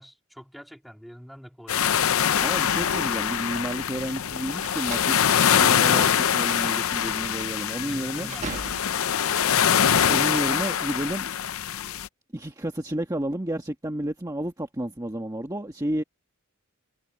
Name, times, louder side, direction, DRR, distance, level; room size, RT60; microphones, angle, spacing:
voice 1, 0.0-2.1 7.7-9.5, equal, ahead, 2.5 m, -46 dB
sound 1, 1.7-12.1, left 8 dB, 70° left, 0.6 m, -24 dB
voice 2, 2.4-5.2 5.5-8.3 9.9-11.3 12.3-16.0, right 1 dB, 15° right, 1.4 m, -31 dB
sound 2, 4.5-9.2, right 3 dB, 35° right, 1.2 m, -41 dB
head